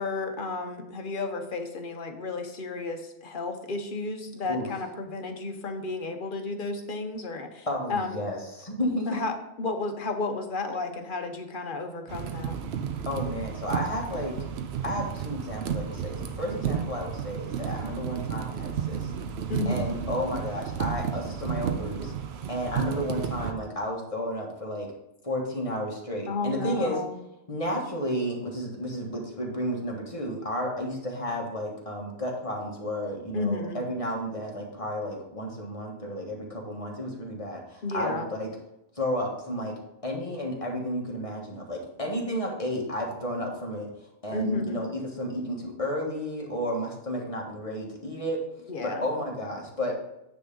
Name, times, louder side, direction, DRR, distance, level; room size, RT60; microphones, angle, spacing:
voice 1, 0.0-8.2 9.1-9.3 9.6-12.6 19.5-19.9 26.3-27.1 33.3-33.8 37.8-38.3 44.3-44.8 48.7-49.0, left 3 dB, 50° left, 5 dB, 1.0 m, -32 dB
voice 2, 7.7-9.2 13.0-14.4 14.8-19.1 19.6-22.1 22.5-24.9 25.2-27.0 27.5-38.5 38.9-43.9 44.2-48.4 48.8-50.0, equal, 30° left, -1 dB, 1.5 m, -32 dB
sound 1, 12.1-23.5, right 8 dB, 70° right, 0.9 m, -32 dB
9.4 x 3.7 x 5.3 m, 0.85 s
omnidirectional pair, 1.2 m